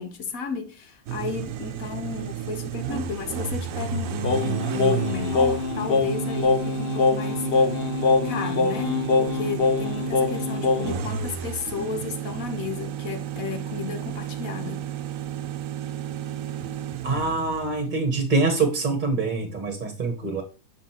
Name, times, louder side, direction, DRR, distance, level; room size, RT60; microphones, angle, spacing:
voice 1, 0.0-7.8 8.2-14.9, left 5 dB, 70° left, 1.4 m, -33 dB
sound 1, 1.1-17.9, right 9 dB, 70° right, 1.0 m, -32 dB
Singing, 4.2-11.1, left 4 dB, 50° left, 0.9 m, -23 dB
voice 2, 17.0-20.4, right 3 dB, 35° right, 1.3 m, -25 dB
6.4 x 6.0 x 2.9 m
omnidirectional pair, 1.5 m